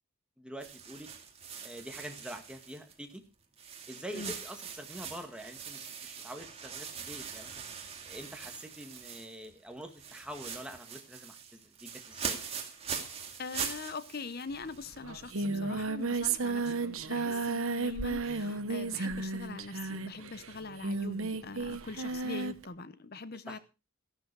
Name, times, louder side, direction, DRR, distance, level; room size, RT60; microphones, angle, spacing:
voice 1, 0.4-1.1 1.6-3.2 3.9-7.7 8.1-12.4 17.6-17.8 23.5-23.6, right 1 dB, 5° right, 1.8 m, -45 dB
sound 1, 0.6-3.2 3.6-9.5 9.8-15.0, right 7 dB, 25° right, 2.2 m, -42 dB
voice 2, 13.4-23.6, left 4 dB, 45° left, 0.8 m, -43 dB
Singing, 14.6-14.7 14.9-22.6, right 3 dB, 70° right, 1.1 m, -33 dB
14.5 x 12.0 x 4.7 m
head